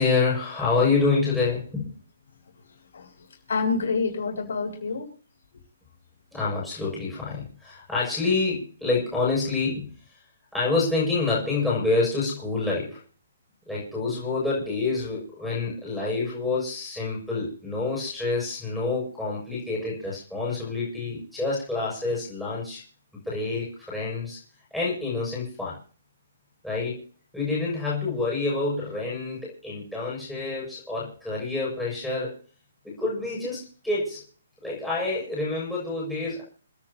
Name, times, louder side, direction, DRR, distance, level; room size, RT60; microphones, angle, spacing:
voice 1, 0.0-1.9 6.3-9.9 10.5-13.0 13.7-22.8 23.3-24.4 24.7-25.8 26.6-27.0 27.3-32.3 32.8-34.2 34.6-36.4, left 3 dB, ahead, -8 dB, 6.9 m, -27 dB
voice 2, 2.9-5.1, left 4 dB, 70° left, 0 dB, 7.6 m, -28 dB
30.0 x 10.0 x 2.9 m, 0.41 s
hypercardioid pair, 160°, 0 cm